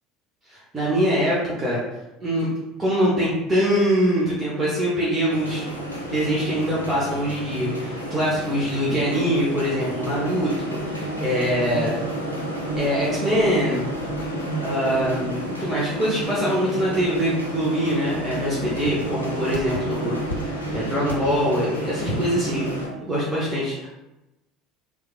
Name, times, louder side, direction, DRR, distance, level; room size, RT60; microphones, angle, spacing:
voice 1, 0.5-1.8 2.2-2.5 2.8-5.6 6.0-12.0 12.8-13.8 14.6-22.7 23.0-24.0, equal, 20° right, -7 dB, 0.8 m, -23 dB
sound 1, 5.3-22.9, right 1 dB, 85° left, 0.4 m, -30 dB
3.1 x 2.3 x 2.3 m, 0.97 s
figure-of-eight pair, 65°, 0 cm